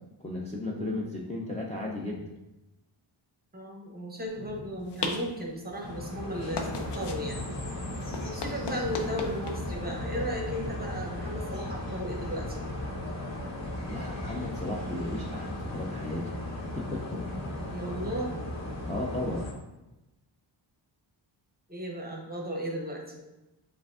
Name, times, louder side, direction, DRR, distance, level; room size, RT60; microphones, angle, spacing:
voice 1, 0.2-2.3 13.8-16.3 16.7-17.3 18.0-18.2 18.8-19.5, left 2 dB, 15° left, -5 dB, 0.4 m, -35 dB
voice 2, 3.5-7.5 8.2-12.6 17.7-18.5 21.7-23.2, equal, 20° right, 0 dB, 0.7 m, -35 dB
sound 1, 4.3-11.8, left 4 dB, 60° left, 0.6 m, -40 dB
sound 2, 5.8-19.5, left 1 dB, 35° left, 0.9 m, -36 dB
7.1 x 2.5 x 2.4 m, 0.99 s
wide cardioid pair, 130°, 47 cm